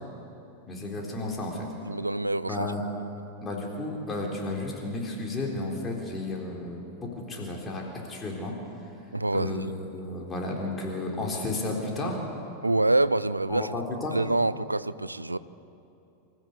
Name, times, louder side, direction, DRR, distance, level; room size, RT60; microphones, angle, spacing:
voice 1, 0.7-1.7 2.5-2.8 3.4-8.5 9.3-12.2 13.5-14.2, left 2 dB, 20° left, -1 dB, 3.8 m, -33 dB
voice 2, 1.9-2.7 9.1-9.7 12.6-13.7 14.1-15.4, right 2 dB, 85° right, 17 dB, 0.5 m, -26 dB
27.5 x 14.5 x 8.3 m, 2.8 s
figure-of-eight pair, 90°, 0 cm